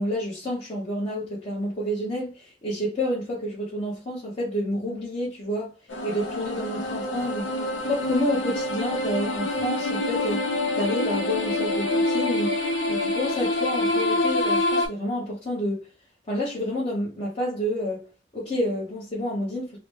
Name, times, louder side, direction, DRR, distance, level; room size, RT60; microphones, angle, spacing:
voice 1, 0.0-5.7 6.0-7.5 7.8-10.4 10.7-12.5 12.9-15.8 16.3-18.0 18.3-19.8, equal, 30° left, 1.1 m, -29 dB
sound 1, 5.9-14.9, left 1 dB, 70° left, 0.8 m, -26 dB
3.9 x 2.1 x 3.3 m
head